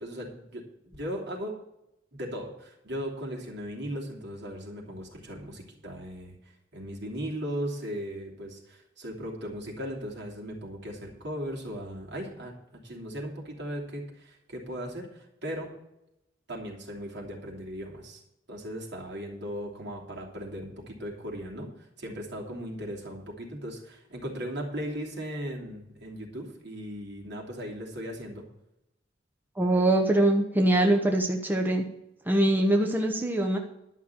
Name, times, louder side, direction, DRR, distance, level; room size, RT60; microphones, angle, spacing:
voice 1, 0.0-1.6 2.1-6.4 6.7-12.5 12.8-15.7 16.5-18.2 18.5-28.4, equal, 65° right, -1 dB, 3.0 m, -37 dB
voice 2, 29.6-31.8 32.3-33.6, right 1 dB, 10° right, 2 dB, 0.9 m, -23 dB
11.0 x 6.0 x 8.8 m, 0.86 s
head